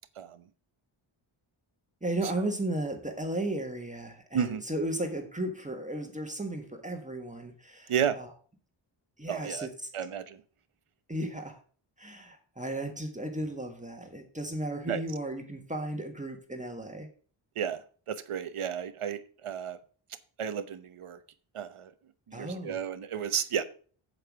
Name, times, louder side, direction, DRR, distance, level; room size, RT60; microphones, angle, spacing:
voice 1, 2.0-8.3 9.2-9.7 11.1-11.6 12.0-17.1 22.3-22.8, right 1 dB, 15° right, 4 dB, 1.5 m, -35 dB
voice 2, 9.3-9.7 9.9-10.4 14.9-15.0 17.6-19.8 20.4-21.2 21.5-21.9 22.3-23.6, right 8 dB, 85° right, 11 dB, 1.0 m, -32 dB
8.0 x 7.7 x 4.8 m, 0.42 s
wide cardioid pair, 130°, 49 cm